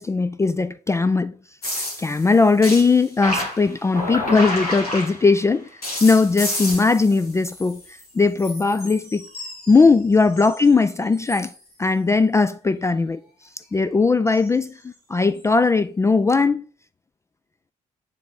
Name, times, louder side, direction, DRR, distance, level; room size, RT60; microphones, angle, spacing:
voice 1, 0.0-1.4 2.0-5.7 6.0-7.8 8.1-9.2 9.7-11.5 11.8-13.2 13.7-16.6, left 4 dB, 15° left, 0.3 m, -19 dB
sound 1, 1.6-5.4 5.8-8.1 8.4-10.7 11.1-11.6 14.3-14.5 15.4-15.5, left 1 dB, 90° left, 1.1 m, -30 dB
7.4 x 3.4 x 3.9 m
figure-of-eight pair, 45°, 19 cm